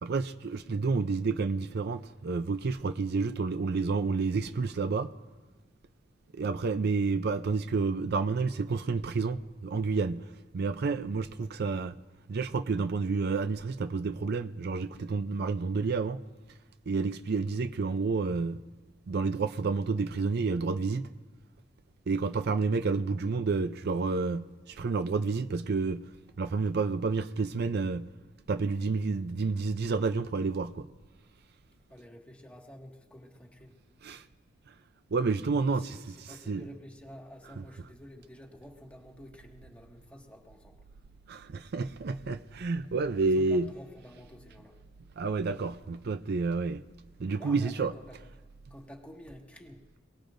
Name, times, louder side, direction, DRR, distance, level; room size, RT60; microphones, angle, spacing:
voice 1, 0.0-5.1 6.3-10.3 10.5-12.0 12.3-16.2 16.9-18.6 19.1-21.1 22.1-26.1 26.4-28.1 28.5-30.9 34.0-34.2 34.7-34.8 35.1-35.8 36.2-36.6 41.3-43.7 45.2-46.8 47.2-47.9, right 4 dB, 55° right, 0.5 m, -30 dB
voice 2, 31.9-33.8 35.7-40.8 43.2-44.7 47.4-48.2 48.7-49.8, equal, 5° left, 1.8 m, -50 dB
27.5 x 19.0 x 2.6 m
head